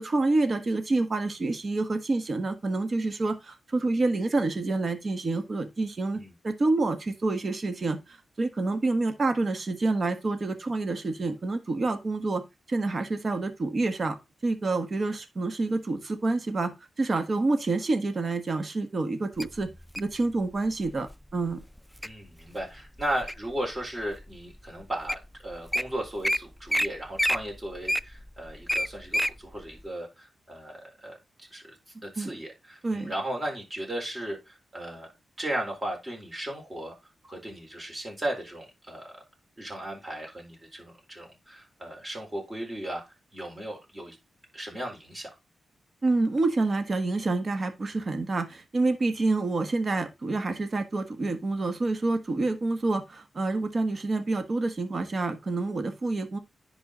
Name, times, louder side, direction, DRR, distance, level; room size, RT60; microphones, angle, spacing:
voice 1, 0.0-12.4 12.7-14.2 14.4-16.7 17.0-19.7 20.0-21.7 32.2-32.3 32.8-33.1 46.0-56.4, right 3 dB, 45° right, 1.4 m, -28 dB
Wild animals, 19.4-20.1 20.8-21.1 21.6-22.1 22.6-23.5 24.1-24.2 24.8-24.9 25.1-25.3 25.5-25.8 26.2-26.4 26.7-26.9 27.2-29.3 29.8-29.9, equal, ahead, 0.4 m, -27 dB
voice 2, 22.0-31.8 32.0-35.1 35.4-37.0 37.2-39.1 39.6-43.0 43.3-44.2 44.5-45.3, right 1 dB, 25° right, 4.0 m, -36 dB
10.5 x 4.0 x 3.9 m
cardioid pair, 80°, 0 cm